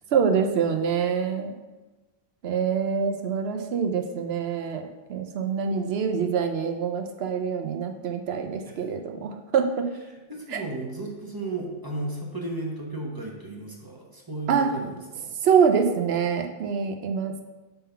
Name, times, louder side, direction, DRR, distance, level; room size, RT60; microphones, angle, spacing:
voice 1, 0.1-1.5 2.4-4.8 5.1-9.9 10.5-10.6 14.5-14.7 15.4-17.4, right 6 dB, 80° right, 5 dB, 0.9 m, -25 dB
voice 2, 10.1-15.4, right 2 dB, 25° right, -2 dB, 0.9 m, -34 dB
5.6 x 3.7 x 5.6 m, 1.2 s
omnidirectional pair, 1.0 m